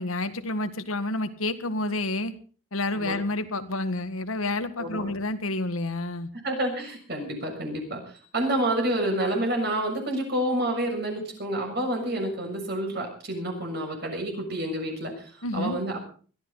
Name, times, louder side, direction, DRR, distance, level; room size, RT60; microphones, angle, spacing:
voice 1, 0.0-2.3 2.7-6.3 15.4-15.8, left 2 dB, 90° left, 9 dB, 1.8 m, -29 dB
voice 2, 4.8-5.1 6.4-16.0, right 1 dB, 50° right, 3 dB, 6.7 m, -29 dB
22.0 x 14.0 x 4.0 m, 0.40 s
head